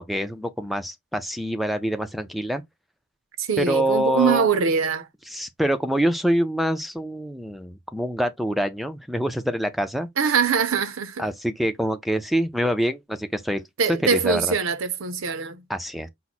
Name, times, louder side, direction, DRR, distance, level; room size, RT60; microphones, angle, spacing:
voice 1, 0.0-2.6 3.6-4.5 5.3-10.1 11.2-13.6 14.1-14.5 15.7-16.1, right 1 dB, ahead, 0.4 m, -25 dB
voice 2, 3.4-5.1 10.2-11.3 13.8-15.6, right 5 dB, 75° right, 0.6 m, -23 dB
5.8 x 2.1 x 4.1 m
head